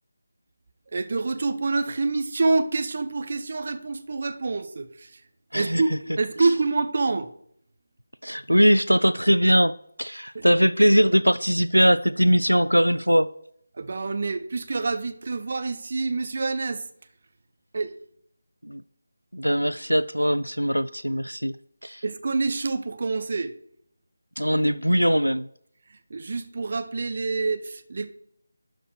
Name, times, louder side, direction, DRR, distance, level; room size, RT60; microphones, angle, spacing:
voice 1, 0.9-5.2 5.5-7.3 10.3-10.4 13.7-16.9 17.7-17.9 22.0-23.5 25.9-28.1, right 3 dB, 40° right, 0.8 m, -27 dB
voice 2, 8.2-13.3 18.6-18.8 19.3-21.6 21.8-22.0 24.4-25.5, equal, 90° right, 0.4 m, -21 dB
12.0 x 4.5 x 6.2 m
figure-of-eight pair, 160°, 0 cm